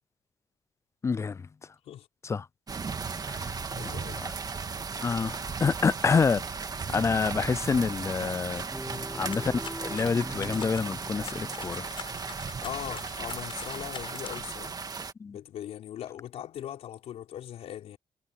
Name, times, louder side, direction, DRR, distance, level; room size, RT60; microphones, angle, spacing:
voice 1, 1.0-1.4 2.2-2.4 3.3-3.4 5.0-6.4 6.9-8.6 9.1-11.9 15.2-15.4, left 5 dB, 25° left, 0.4 m, -27 dB
sound 1, 2.7-15.1, right 5 dB, 35° right, 1.9 m, -36 dB
voice 2, 3.7-4.2 8.8-9.1 12.6-14.8 15.3-18.0, left 11 dB, 75° left, 4.7 m, -40 dB
Guitar, 8.7-13.0, equal, ahead, 5.9 m, -43 dB
sound 2, 9.3-14.6, left 7 dB, 55° left, 6.1 m, -44 dB
cardioid pair, 80°, 11 cm